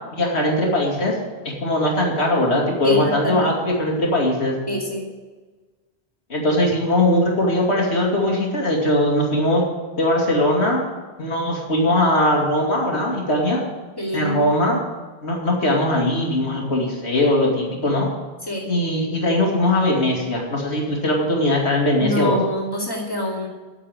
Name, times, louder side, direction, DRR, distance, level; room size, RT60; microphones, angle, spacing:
voice 1, 0.1-1.2 1.6-4.6 6.3-9.6 9.9-10.8 11.2-13.6 14.1-14.8 15.2-18.1 18.7-22.4, left 1 dB, 80° left, -1 dB, 2.6 m, -20 dB
voice 2, 2.8-3.5 4.7-5.0 14.0-14.5 18.5-18.7 21.9-23.5, left 1 dB, 20° left, -2 dB, 2.5 m, -25 dB
8.8 x 7.3 x 8.8 m, 1.3 s
omnidirectional pair, 1.1 m